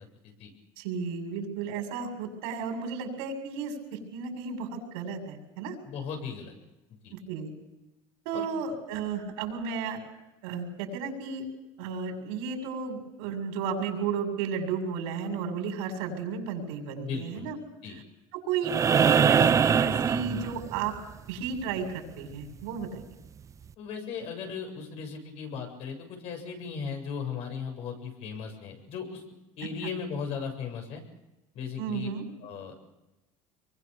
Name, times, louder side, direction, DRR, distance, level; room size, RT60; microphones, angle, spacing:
voice 1, 0.8-5.8 7.1-7.5 8.2-10.0 10.4-11.4 11.8-17.6 18.3-20.9 21.3-23.0 29.8-29.9 31.8-32.3, right 6 dB, 90° right, 3 dB, 7.5 m, -33 dB
voice 2, 5.9-6.5 7.0-7.1 8.3-8.5 17.0-17.5 17.8-18.0 23.8-29.2 29.6-31.0 31.5-32.1 32.4-32.7, left 6 dB, 55° left, 3 dB, 7.7 m, -37 dB
sound 1, 18.6-21.0 22.8-22.9, right 7 dB, 25° right, 0.8 m, -22 dB
26.0 x 23.5 x 7.0 m, 1.0 s
cardioid pair, 135°, 12 cm